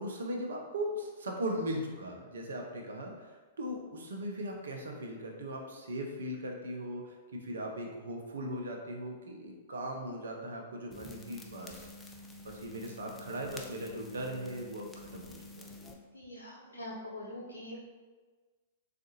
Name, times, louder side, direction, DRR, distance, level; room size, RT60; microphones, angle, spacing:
voice 1, 0.0-3.3 3.6-11.9 12.4-15.7, equal, 70° right, 1 dB, 0.6 m, -38 dB
sound 1, 10.9-15.9, left 2 dB, 10° left, 0.4 m, -49 dB
voice 2, 16.1-17.8, left 1 dB, 75° left, -6 dB, 0.8 m, -43 dB
3.6 x 2.5 x 2.7 m, 1.3 s
figure-of-eight pair, 105°, 0 cm